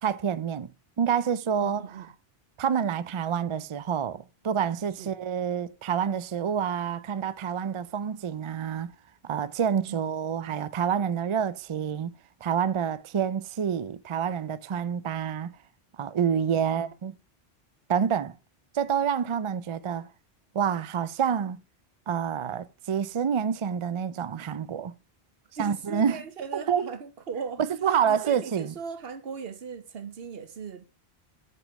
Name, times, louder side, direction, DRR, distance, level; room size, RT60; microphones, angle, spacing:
voice 1, 0.0-0.7 1.0-2.1 2.6-8.9 9.2-12.1 12.4-15.5 16.0-17.1 17.9-18.3 18.7-20.1 20.5-21.6 22.1-24.9 25.6-26.2 26.5-26.9 27.8-28.7, right 8 dB, 50° right, 0.3 m, -28 dB
voice 2, 1.6-2.1 5.0-5.1 9.9-10.0 16.5-16.9 25.6-27.6 28.0-30.9, right 6 dB, 65° right, 1.1 m, -38 dB
7.7 x 5.1 x 4.6 m
omnidirectional pair, 1.1 m